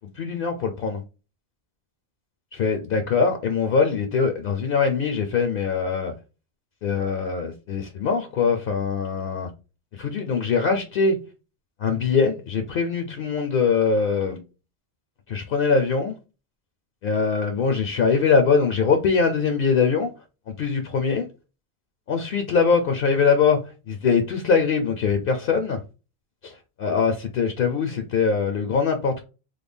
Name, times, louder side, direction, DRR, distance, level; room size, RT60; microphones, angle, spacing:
voice 1, 0.1-1.0 2.6-6.1 6.8-9.5 9.9-11.2 11.8-14.4 15.3-16.2 17.0-20.1 20.5-21.2 22.1-25.8 26.4-29.2, left 5 dB, 65° left, 0.7 m, -22 dB
3.3 x 2.1 x 3.5 m
omnidirectional pair, 1.1 m